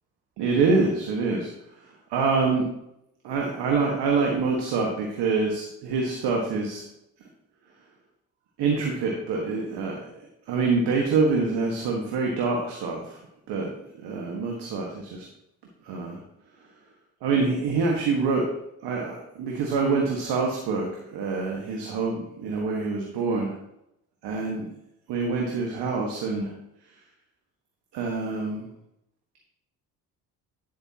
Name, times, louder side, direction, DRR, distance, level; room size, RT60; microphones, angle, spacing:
voice 1, 0.4-1.5 2.1-2.6 3.2-6.8 8.6-10.2 10.5-13.2 13.5-13.7 14.0-15.2 15.9-16.2 17.2-18.4 18.8-23.6 24.2-24.7 25.1-26.5 27.9-28.7, right 4 dB, 70° right, 0 dB, 1.7 m, -26 dB
10.0 x 8.3 x 2.9 m, 0.81 s
hypercardioid pair, 55°, 42 cm